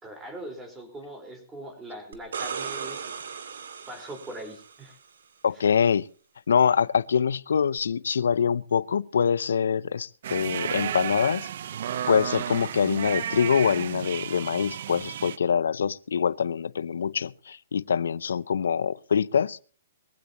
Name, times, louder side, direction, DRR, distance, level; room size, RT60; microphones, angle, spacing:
voice 1, 0.0-3.0 3.9-5.0 5.5-5.6, right 1 dB, 10° right, 4.6 m, -41 dB
sound 1, 2.1-4.9 7.8-7.9, right 6 dB, 80° right, 2.3 m, -36 dB
voice 2, 5.4-6.1 6.5-11.5 12.1-19.6, left 7 dB, 85° left, 0.6 m, -24 dB
sound 2, 10.2-15.4, right 10 dB, 60° right, 0.8 m, -32 dB
22.5 x 15.5 x 3.0 m
hypercardioid pair, 150°, 0 cm